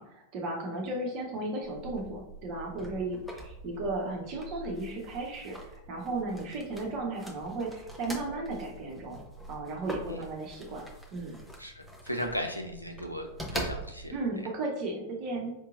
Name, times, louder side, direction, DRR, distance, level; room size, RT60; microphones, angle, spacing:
voice 1, 0.0-9.2 9.5-10.8 11.1-11.4 14.1-15.5, right 2 dB, 40° right, 0 dB, 0.9 m, -35 dB
sound 1, 1.6-14.3, right 1 dB, ahead, 0.7 m, -43 dB
voice 2, 11.6-13.3 13.5-14.2, equal, 90° left, 4 dB, 0.5 m, -36 dB
4.5 x 2.8 x 2.5 m, 0.90 s
figure-of-eight pair, 90°, 0 cm